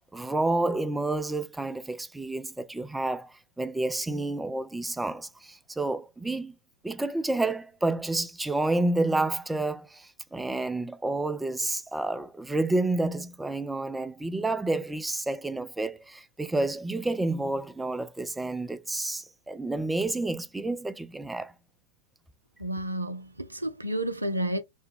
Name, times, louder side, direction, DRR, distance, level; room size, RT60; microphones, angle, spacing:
voice 1, 0.1-6.5 6.8-21.5, right 2 dB, 5° right, 0.4 m, -29 dB
voice 2, 22.6-24.6, right 1 dB, 85° right, 0.4 m, -31 dB
3.4 x 2.1 x 3.2 m
figure-of-eight pair, 90°, 0 cm